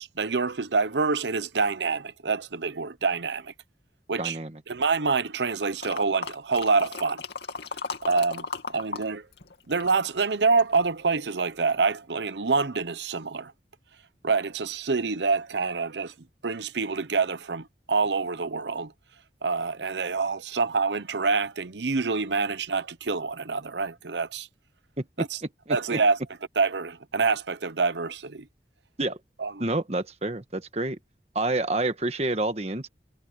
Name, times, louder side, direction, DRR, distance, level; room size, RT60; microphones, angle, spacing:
voice 1, 0.0-3.5 4.1-4.4 4.7-7.2 8.0-8.5 8.7-9.3 9.7-13.5 14.2-16.1 16.4-18.9 19.4-24.5 25.2-25.4 25.7-26.2 26.6-28.4 29.4-29.5, right 4 dB, 85° right, 0.9 m, -26 dB
voice 2, 4.2-4.6 25.0-25.3 25.7-26.0 29.0-29.2 29.6-31.0 31.3-32.9, right 2 dB, 35° right, 1.4 m, -28 dB
sound 1, 5.8-9.1 9.3-10.8 11.3-11.4, left 4 dB, 75° left, 2.6 m, -36 dB
head